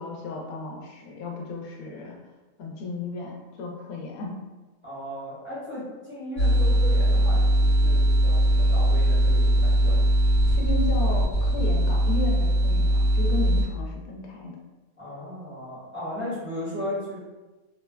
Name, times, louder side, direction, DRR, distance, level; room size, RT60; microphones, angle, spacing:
voice 1, 0.0-2.2 2.6-4.3 10.5-14.6, left 3 dB, 85° left, 0 dB, 1.0 m, -34 dB
voice 2, 4.8-10.0 15.0-17.2, left 1 dB, 10° right, -11 dB, 0.8 m, -36 dB
sound 1, 6.4-13.6, right 1 dB, 50° left, 1.1 m, -20 dB
3.1 x 2.1 x 2.2 m, 1.2 s
omnidirectional pair, 1.5 m